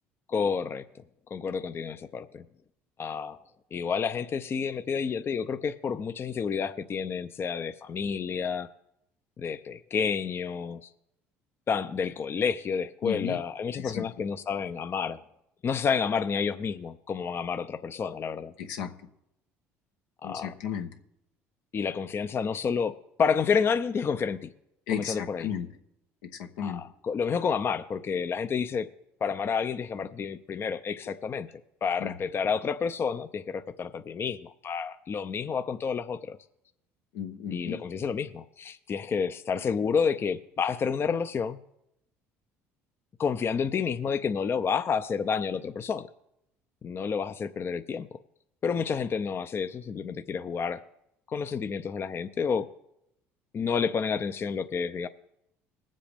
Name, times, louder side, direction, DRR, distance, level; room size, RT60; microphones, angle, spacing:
voice 1, 0.3-0.8 1.3-2.5 3.0-3.4 3.7-8.7 9.4-10.9 11.7-15.2 15.6-18.5 20.2-20.5 21.7-24.5 24.9-25.5 26.6-28.9 29.2-31.5 31.8-36.4 37.5-41.6 43.2-46.1 46.8-48.1 48.6-50.8 51.3-52.7 53.5-55.1, left 6 dB, 40° left, 10 dB, 0.6 m, -30 dB
voice 2, 13.0-13.4 13.7-14.1 18.6-18.9 20.2-20.9 24.9-25.7 26.3-26.8 32.0-32.2 37.1-37.8, left 8 dB, 80° left, 4 dB, 1.0 m, -34 dB
20.5 x 7.5 x 3.5 m, 0.82 s
supercardioid pair, 75°, 6 cm